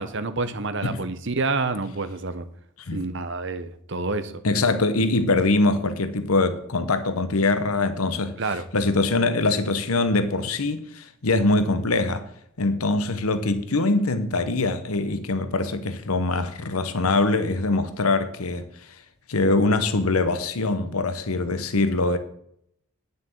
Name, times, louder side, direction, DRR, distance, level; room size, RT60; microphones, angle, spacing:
voice 1, 0.0-2.5 2.9-4.3 8.4-8.6, right 3 dB, 55° right, 1.0 m, -28 dB
voice 2, 4.4-8.4 8.7-12.3 12.6-18.7 19.3-22.2, left 2 dB, 85° left, 1.0 m, -23 dB
9.4 x 6.8 x 7.8 m
head